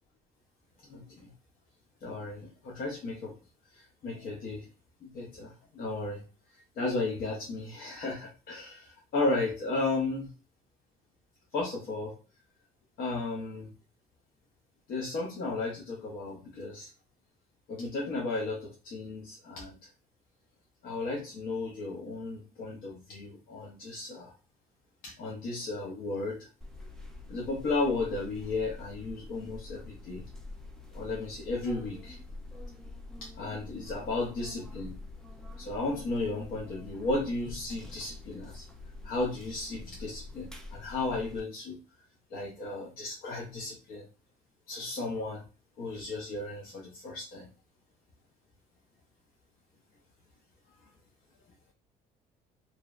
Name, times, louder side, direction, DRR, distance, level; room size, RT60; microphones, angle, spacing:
voice 1, 0.8-1.3 2.0-3.3 3.7-4.7 5.0-6.2 6.5-10.3 11.5-12.1 13.0-13.7 14.9-16.9 17.7-19.8 20.8-24.3 25.0-26.5 27.3-30.3 30.9-32.2 33.2-35.0 35.6-38.6 39.0-41.8 42.3-44.0 44.7-45.4 45.8-47.5, left 3 dB, 60° left, -2 dB, 0.6 m, -34 dB
sound 1, 26.6-41.4, left 2 dB, 5° left, 0.4 m, -46 dB
2.7 x 2.0 x 2.3 m, 0.34 s
cardioid pair, 110°, 17 cm